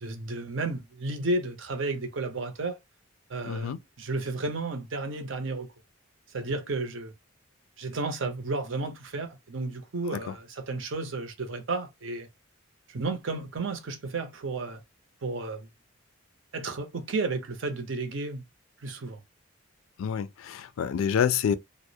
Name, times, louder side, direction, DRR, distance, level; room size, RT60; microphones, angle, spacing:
voice 1, 0.0-2.8 3.3-5.7 6.3-7.1 7.8-12.3 12.9-14.8 15.2-15.7 16.5-18.4 18.8-19.2, right 3 dB, 65° right, 0.6 m, -32 dB
voice 2, 3.5-3.8 10.1-10.2 20.0-21.6, left 7 dB, 85° left, 0.3 m, -27 dB
2.3 x 2.0 x 2.6 m
head